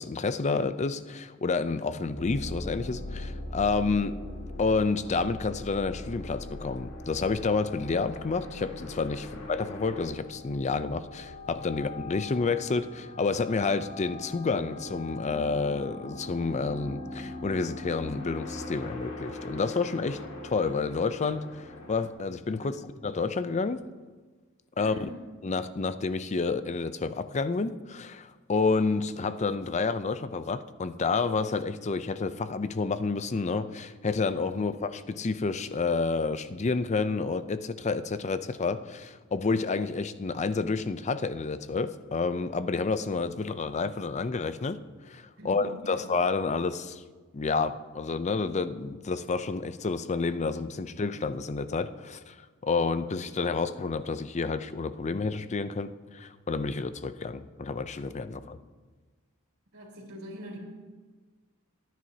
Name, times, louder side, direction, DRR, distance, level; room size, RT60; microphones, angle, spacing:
voice 1, 0.0-4.2 4.6-21.6 21.9-23.8 24.8-25.1 25.4-44.8 45.1-47.0 47.3-52.4 52.6-58.6, left 4 dB, 35° left, 12 dB, 0.5 m, -29 dB
sound 1, 2.1-22.1, left 2 dB, 90° left, 2.3 m, -41 dB
voice 2, 24.8-25.2 34.5-34.6 45.4-46.0 59.7-60.6, right 1 dB, 75° right, -2 dB, 3.4 m, -44 dB
24.0 x 9.5 x 2.8 m, 1.4 s
head